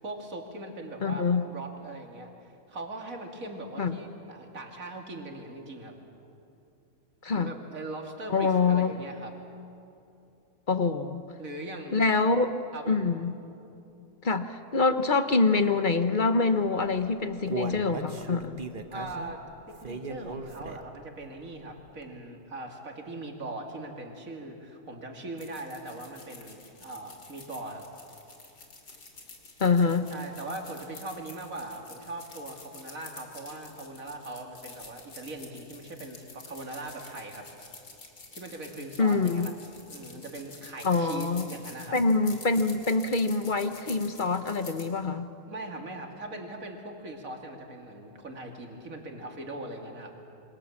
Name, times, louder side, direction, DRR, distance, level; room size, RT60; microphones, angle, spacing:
voice 1, 0.0-5.9 7.3-9.3 11.4-12.2 12.7-13.0 18.9-27.8 30.1-37.5 38.3-39.5 39.9-42.0 45.5-50.1, right 2 dB, 55° right, 2 dB, 3.0 m, -40 dB
voice 2, 1.0-1.4 3.8-4.0 7.2-7.5 8.3-9.0 10.7-11.2 11.9-12.5 12.9-13.3 14.2-18.6 29.6-30.1 39.0-39.5 40.8-41.4 41.9-45.3, left 4 dB, 35° left, 9 dB, 0.9 m, -25 dB
Human voice, 16.9-21.0 21.4-21.5 22.0-22.1, right 4 dB, 35° right, 1.2 m, -37 dB
sound 1, 25.4-44.9, left 3 dB, 85° left, 3.5 m, -48 dB
27.5 x 25.0 x 7.3 m, 2.8 s
omnidirectional pair, 1.7 m